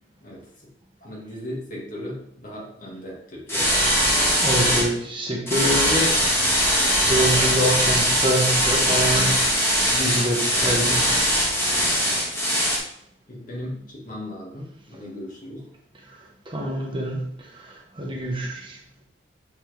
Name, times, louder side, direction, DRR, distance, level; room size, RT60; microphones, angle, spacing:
voice 1, 0.2-0.7 1.0-3.8 12.1-12.2 13.3-15.7, left 1 dB, 50° left, -3 dB, 2.2 m, -37 dB
sound 1, 3.5-4.9 5.5-12.8, equal, 15° left, 2.0 m, -21 dB
voice 2, 4.4-6.2 7.0-11.1 16.1-16.2 16.5-18.8, right 1 dB, 30° right, -1 dB, 1.2 m, -26 dB
7.7 x 4.3 x 3.5 m, 0.74 s
head